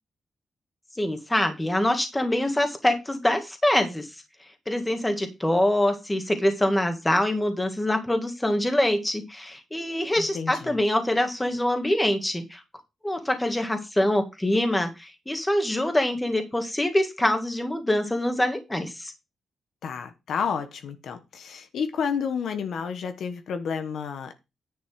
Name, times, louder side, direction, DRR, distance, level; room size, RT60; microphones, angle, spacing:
voice 1, 1.0-4.1 4.7-12.6 13.0-19.1, left 1 dB, 10° left, 1.8 m, -24 dB
voice 2, 10.2-10.8 19.8-24.3, left 6 dB, 75° left, 1.2 m, -30 dB
10.0 x 6.1 x 4.6 m
wide cardioid pair, 155°, 0 cm